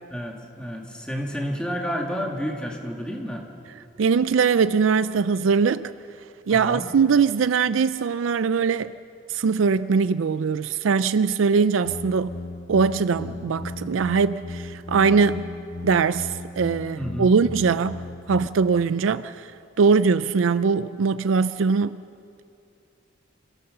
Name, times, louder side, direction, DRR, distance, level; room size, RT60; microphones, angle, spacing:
voice 1, 0.1-3.5 6.5-6.9 13.3-13.5 17.0-17.3, equal, 5° left, 2.3 m, -30 dB
voice 2, 4.0-5.9 6.5-8.9 9.3-12.3 12.7-15.5 15.8-18.0 18.3-19.5 19.8-22.0, right 5 dB, 80° right, 0.4 m, -21 dB
sound 1, 11.8-18.5, left 2 dB, 75° left, 0.9 m, -36 dB
27.0 x 16.5 x 6.7 m
head